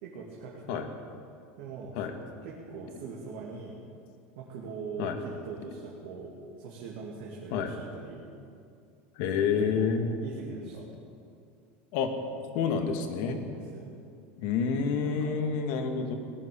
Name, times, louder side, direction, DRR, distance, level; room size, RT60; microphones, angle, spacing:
voice 1, 0.0-0.9 1.6-1.9 2.4-3.8 4.3-6.3 6.6-8.3 9.6-10.0 10.2-10.8 13.3-14.0 15.0-15.3, right 5 dB, 65° right, -3 dB, 2.4 m, -41 dB
voice 2, 9.2-10.1 11.9-12.1 12.5-13.4 14.4-16.1, left 6 dB, 55° left, 6 dB, 1.7 m, -28 dB
18.0 x 10.5 x 6.9 m, 2.4 s
supercardioid pair, 165°, 6 cm